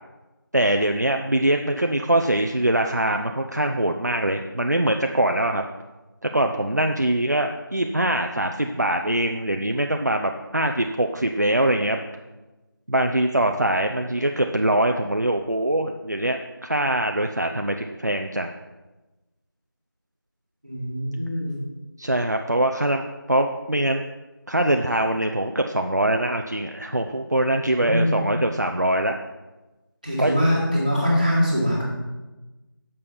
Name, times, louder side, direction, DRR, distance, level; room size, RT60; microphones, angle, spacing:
voice 1, 0.5-5.6 6.2-12.0 12.9-18.5 22.0-24.0 24.5-29.2 30.2-30.3, right 1 dB, 50° right, 4 dB, 0.5 m, -23 dB
voice 2, 20.6-21.6 27.6-28.2 30.0-31.8, equal, 20° right, -5 dB, 1.5 m, -23 dB
6.7 x 5.2 x 7.0 m, 1.1 s
figure-of-eight pair, 180°, 12 cm